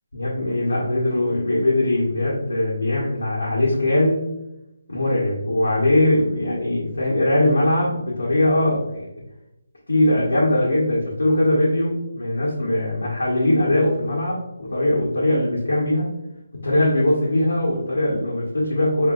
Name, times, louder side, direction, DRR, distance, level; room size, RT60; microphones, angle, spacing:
voice 1, 0.1-4.2 4.9-9.2 9.9-16.1 16.6-19.1, left 1 dB, 90° left, -6 dB, 1.0 m, -21 dB
3.7 x 2.6 x 2.4 m, 0.89 s
hypercardioid pair, 170°, 0 cm